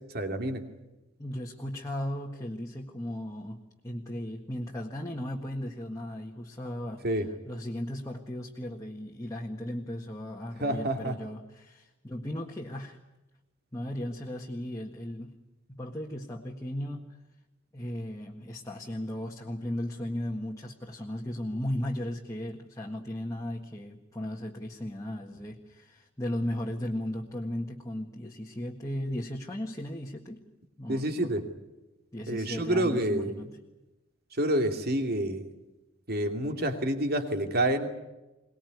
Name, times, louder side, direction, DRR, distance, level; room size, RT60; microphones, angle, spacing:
voice 1, 0.1-0.6 7.0-7.3 10.6-11.1 30.9-31.4 32.3-33.3 34.4-35.4 36.1-37.9, right 1 dB, 50° right, 6 dB, 2.7 m, -28 dB
voice 2, 1.2-13.0 13.7-15.4 15.7-17.2 17.7-30.4 30.8-31.4 32.1-33.5, left 1 dB, 15° left, -1 dB, 1.7 m, -36 dB
23.5 x 20.0 x 9.5 m, 1.0 s
head